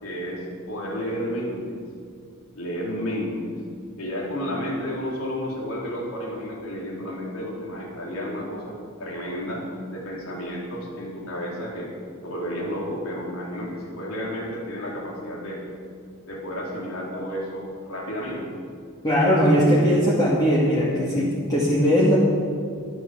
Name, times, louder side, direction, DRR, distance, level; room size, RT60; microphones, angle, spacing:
voice 1, 0.0-1.8 2.6-3.5 4.0-9.6 9.9-12.0 12.2-15.6 16.3-18.5 19.3-19.9 20.9-21.3, equal, 75° left, -2 dB, 3.8 m, -32 dB
voice 2, 19.0-22.1, equal, 20° left, -7 dB, 2.5 m, -19 dB
13.5 x 11.0 x 7.1 m, 2.3 s
head